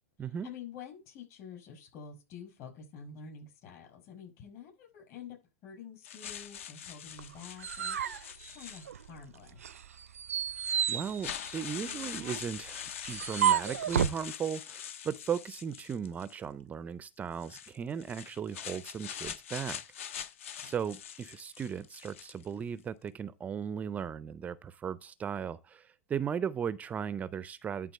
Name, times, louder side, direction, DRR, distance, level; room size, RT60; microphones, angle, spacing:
voice 1, 0.2-5.4 5.6-8.0 8.3-9.8 20.6-20.7, left 7 dB, 45° left, 5.6 m, -48 dB
sound 1, 6.0-9.2 10.1-10.2 10.6-16.4 17.3-22.5, left 9 dB, 65° left, 0.8 m, -44 dB
sound 2, 7.2-9.2 9.6-14.2, right 9 dB, 85° right, 0.5 m, -32 dB
voice 2, 10.9-19.8 20.6-27.9, right 7 dB, 20° right, 0.4 m, -37 dB
11.0 x 3.7 x 6.5 m
hypercardioid pair, 115°, 8 cm